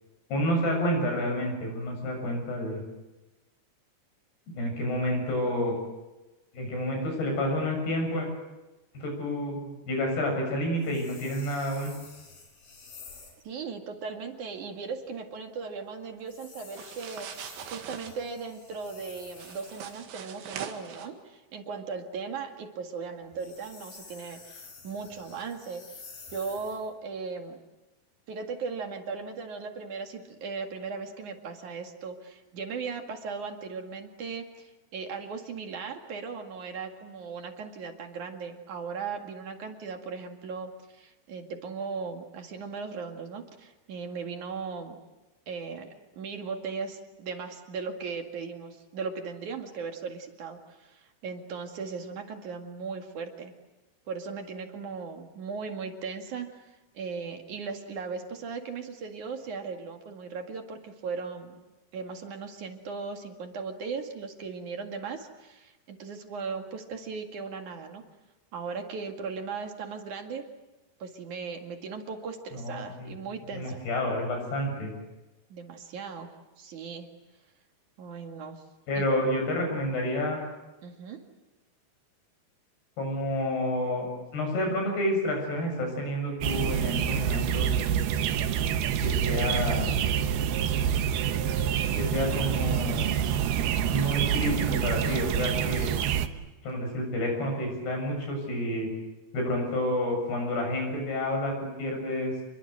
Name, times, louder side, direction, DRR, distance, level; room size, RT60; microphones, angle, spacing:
voice 1, 0.3-2.8 4.5-5.7 6.5-8.3 8.9-11.9 72.5-73.2 73.5-74.9 78.9-80.4 83.0-87.8 89.0-89.9 92.0-93.2 93.8-95.9 96.6-98.9 99.3-102.3, left 1 dB, 65° left, 3 dB, 9.2 m, -29 dB
sound 1, 10.8-13.4 16.2-20.0 23.2-26.9, left 4 dB, 90° left, 8.2 m, -50 dB
voice 2, 13.4-26.0 26.3-27.6 28.3-45.0 45.5-45.9 46.2-53.5 54.1-61.5 61.9-68.0 68.5-70.4 71.0-73.8 75.5-76.3 76.6-77.1 78.0-78.6 78.9-79.0 80.8-81.2, right 5 dB, 50° right, 4 dB, 3.0 m, -37 dB
sound 2, 16.7-18.1 19.3-21.1, right 8 dB, 90° right, 4.3 m, -41 dB
sound 3, 86.4-96.3, right 9 dB, 70° right, 2.9 m, -27 dB
28.5 x 23.0 x 8.1 m, 1.1 s
omnidirectional pair, 5.1 m